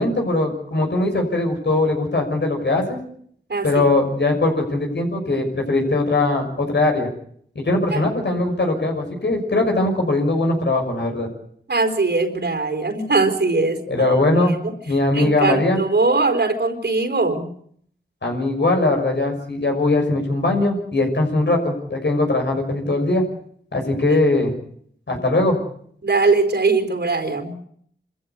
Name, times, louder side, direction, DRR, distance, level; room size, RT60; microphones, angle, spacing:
voice 1, 0.0-3.0 3.6-7.1 7.5-11.3 13.9-14.6 14.9-15.8 18.2-23.2 23.7-24.5 25.1-25.6, left 2 dB, 75° left, 2 dB, 6.2 m, -20 dB
voice 2, 3.5-3.9 7.9-8.0 11.7-14.2 14.5-14.7 15.1-17.5 24.1-24.2 26.0-27.5, right 3 dB, 70° right, 5 dB, 4.4 m, -21 dB
26.0 x 14.5 x 8.3 m, 0.65 s
cardioid pair, 40°, 18 cm